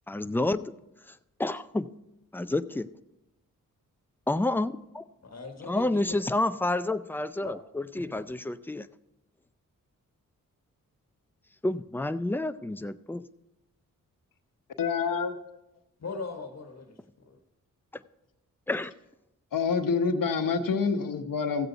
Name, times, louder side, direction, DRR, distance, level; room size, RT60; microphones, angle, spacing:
voice 1, 0.1-0.7 1.4-1.9 2.3-2.9 4.3-5.0 5.7-8.9 11.6-13.2 18.7-18.9, left 2 dB, 5° left, 12 dB, 0.4 m, -29 dB
voice 2, 5.2-6.2 7.4-7.6 7.9-8.2 16.0-17.4, left 4 dB, 50° left, 5 dB, 1.4 m, -40 dB
voice 3, 14.8-15.4 19.5-21.7, left 5 dB, 70° left, 7 dB, 1.0 m, -27 dB
15.0 x 8.0 x 3.9 m, 0.91 s
cardioid pair, 60°, 34 cm